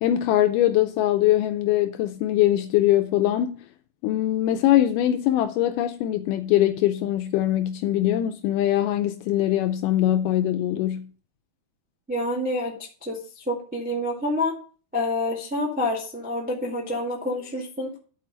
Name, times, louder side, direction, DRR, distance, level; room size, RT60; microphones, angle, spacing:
voice 1, 0.0-3.6 4.0-11.1, left 13 dB, 85° left, 1.9 m, -22 dB
voice 2, 12.1-12.7 13.0-14.6 14.9-18.0, left 1 dB, 5° right, 1.0 m, -27 dB
10.5 x 4.7 x 5.3 m
omnidirectional pair, 4.3 m